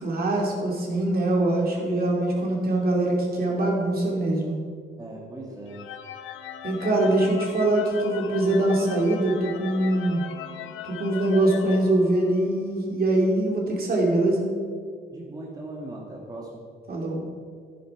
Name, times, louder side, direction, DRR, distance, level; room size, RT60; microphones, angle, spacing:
voice 1, 0.0-4.6 6.6-10.2 10.8-14.5 16.9-17.3, right 1 dB, 50° right, -1 dB, 2.9 m, -23 dB
voice 2, 5.0-5.9 15.1-16.6, right 2 dB, 20° right, -3 dB, 1.9 m, -39 dB
sound 1, 5.7-12.7, left 10 dB, 85° left, 0.9 m, -39 dB
11.0 x 10.0 x 4.6 m, 2.1 s
cardioid pair, 90°, 20 cm